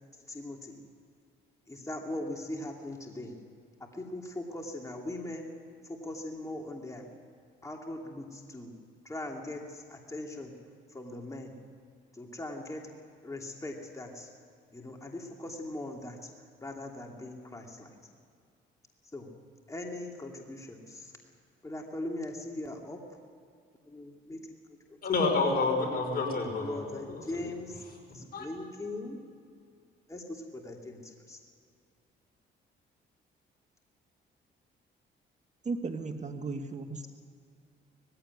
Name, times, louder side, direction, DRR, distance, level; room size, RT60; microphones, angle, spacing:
voice 1, 0.3-0.8 1.7-3.3 3.8-5.5 5.9-7.0 7.6-8.7 9.0-10.5 10.9-11.5 12.1-12.8 13.2-14.3 14.7-16.3 16.6-18.0 19.1-19.3 19.7-21.1 21.6-23.0 23.8-24.4 24.9-25.0 26.6-27.8 28.1-29.2 30.1-31.4, left 1 dB, 15° left, 0 dB, 2.8 m, -40 dB
voice 2, 25.0-27.2 28.3-28.5, left 3 dB, 50° left, 2 dB, 5.5 m, -29 dB
voice 3, 35.6-37.1, right 3 dB, 35° right, 6 dB, 1.6 m, -35 dB
19.5 x 16.0 x 9.5 m, 2.3 s
cardioid pair, 90°, 20 cm